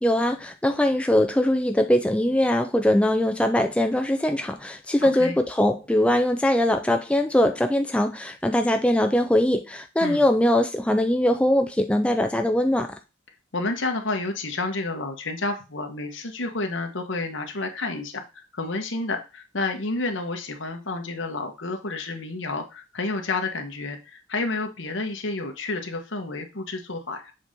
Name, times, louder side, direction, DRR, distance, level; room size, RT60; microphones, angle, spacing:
voice 1, 0.0-13.0, left 1 dB, 5° left, 0.4 m, -22 dB
voice 2, 5.0-5.4 10.0-10.3 13.5-27.3, left 3 dB, 60° left, 1.4 m, -30 dB
7.3 x 4.2 x 3.7 m
head